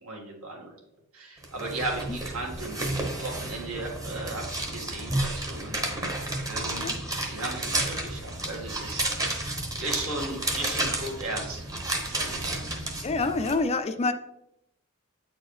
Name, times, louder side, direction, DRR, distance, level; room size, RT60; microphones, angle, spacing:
voice 1, 0.0-0.7 1.1-2.8 3.2-6.9 7.3-9.5 9.8-11.7 12.0-12.7, right 2 dB, 75° right, -1 dB, 1.7 m, -36 dB
sound 1, 1.4-13.5, right 2 dB, 15° right, 0.9 m, -31 dB
voice 2, 13.0-14.1, left 3 dB, 30° left, 9 dB, 0.4 m, -27 dB
8.4 x 4.4 x 3.2 m, 0.80 s
head